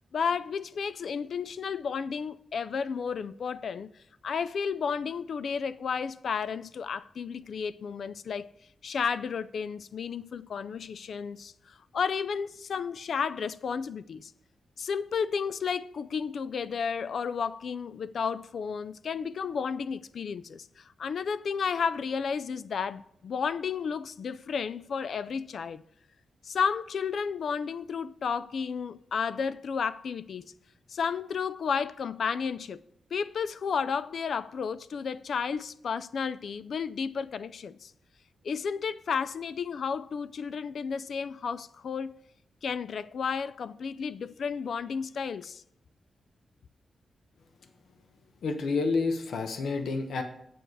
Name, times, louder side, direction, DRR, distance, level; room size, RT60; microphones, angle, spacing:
voice 1, 0.1-3.9 4.2-8.5 8.8-14.3 14.8-25.8 26.4-30.5 30.9-32.8 33.1-37.9 38.4-42.1 42.6-45.6, left 6 dB, 60° left, 0.4 m, -32 dB
voice 2, 48.4-50.2, left 4 dB, 80° left, 1.0 m, -29 dB
7.9 x 7.7 x 4.7 m
wide cardioid pair, 175°, 0 cm